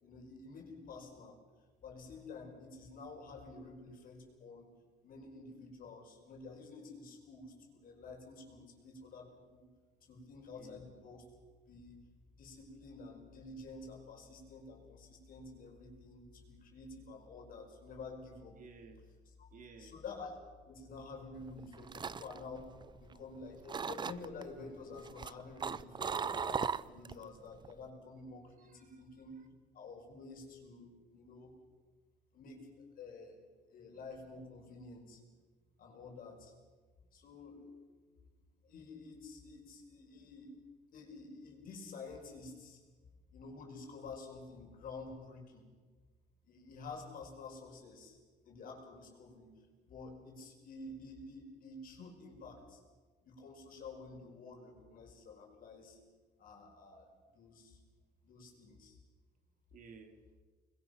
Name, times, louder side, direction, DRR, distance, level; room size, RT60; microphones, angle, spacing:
voice 1, 0.0-1.4 1.8-4.7 5.0-9.7 10.0-11.3 11.7-12.0 12.3-18.6 19.4-19.5 19.8-20.4 20.6-22.7 23.0-29.4 29.7-31.5 32.3-32.7 33.0-35.2 35.8-36.5 37.1-37.8 38.6-40.5 40.9-42.8 43.3-45.7 46.4-48.2 48.4-49.5 49.8-52.8 53.2-56.0 56.4-57.8 58.2-59.0, left 3 dB, 55° left, 2 dB, 5.4 m, -50 dB
sound 1, 9.8-24.3, left 5 dB, 30° left, 3.6 m, -64 dB
voice 2, 10.5-10.8 18.6-19.1 19.5-19.9 27.0-27.1 28.6-29.1 29.3-29.5 59.7-60.2, right 5 dB, 50° right, 5 dB, 2.9 m, -56 dB
sound 2, 21.5-23.3 23.7-24.4 25.0-27.2 27.6-27.9, right 6 dB, 25° right, 0.6 m, -38 dB
25.5 x 21.5 x 5.9 m, 1.4 s
cardioid pair, 110°, 17 cm